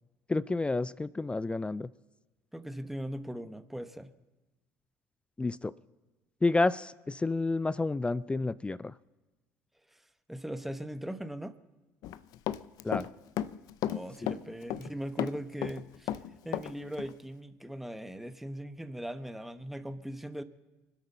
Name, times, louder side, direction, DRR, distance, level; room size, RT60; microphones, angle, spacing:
voice 1, 0.3-1.9 5.4-5.7 6.4-8.9 12.8-13.1, left 3 dB, 15° left, 19 dB, 0.4 m, -30 dB
voice 2, 2.5-4.1 9.9-10.0 10.3-11.5 13.9-16.2 16.4-20.4, right 1 dB, 5° right, 11 dB, 1.0 m, -39 dB
Run, 12.0-13.1 13.4-14.9 15.2-16.7 17.0-17.1, left 12 dB, 65° left, 0.6 m, -33 dB
24.5 x 8.4 x 5.5 m, 1.1 s
hypercardioid pair, 70°, 7 cm